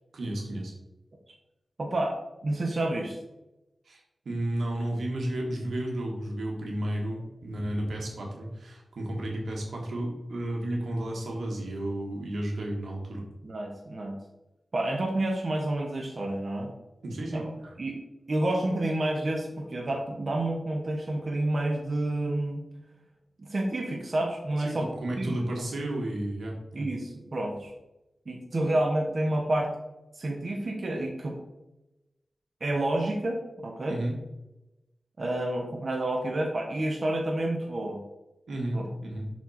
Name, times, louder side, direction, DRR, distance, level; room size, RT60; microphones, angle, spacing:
voice 1, 0.1-0.7 3.8-13.2 17.0-17.7 24.6-26.9 33.9-34.1 38.5-39.3, right 1 dB, 85° right, 0 dB, 1.7 m, -32 dB
voice 2, 1.8-3.2 13.4-14.2 14.7-16.7 17.3-17.4 17.8-18.0 18.3-22.6 23.4-24.9 25.2-25.7 26.7-27.7 28.3-29.7 30.2-31.4 32.6-34.0 35.2-38.0 38.7-38.9, right 1 dB, 55° right, 1 dB, 1.1 m, -29 dB
6.2 x 4.4 x 4.2 m, 0.97 s
cardioid pair, 55°, 0 cm